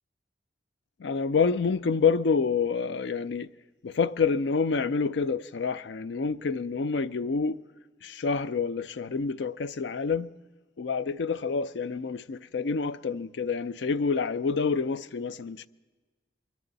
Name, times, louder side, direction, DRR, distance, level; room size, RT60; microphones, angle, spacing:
voice 1, 1.0-3.5 3.8-7.6 8.0-10.3 10.8-15.7, left 5 dB, 85° left, 0.5 m, -28 dB
22.0 x 13.5 x 4.0 m
head